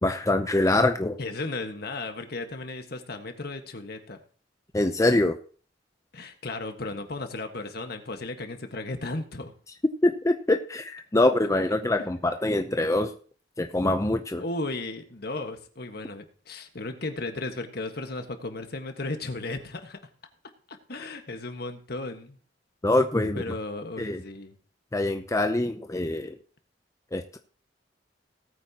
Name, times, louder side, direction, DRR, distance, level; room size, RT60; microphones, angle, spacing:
voice 1, 0.0-1.2 4.7-5.4 10.0-13.1 13.6-14.4 22.8-23.4 24.0-24.2 24.9-26.4 27.1-27.4, left 2 dB, 15° left, 6 dB, 0.6 m, -24 dB
voice 2, 1.2-4.2 6.1-9.5 11.4-11.5 12.0-12.1 14.4-20.0 20.7-22.4 23.3-24.6, left 2 dB, 60° left, 6 dB, 1.6 m, -35 dB
18.5 x 8.9 x 2.9 m, 0.41 s
head